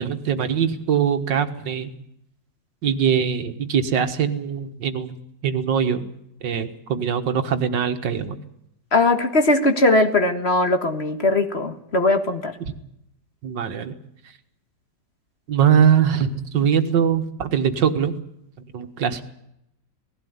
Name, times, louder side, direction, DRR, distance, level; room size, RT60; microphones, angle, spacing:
voice 1, 0.0-1.9 2.8-5.2 5.4-6.0 6.4-8.4 13.4-13.9 15.5-18.2 18.7-19.2, right 7 dB, 85° right, 8 dB, 2.2 m, -22 dB
voice 2, 8.9-12.6, left 2 dB, 40° left, 6 dB, 1.8 m, -19 dB
18.5 x 16.0 x 9.5 m, 0.79 s
omnidirectional pair, 1.9 m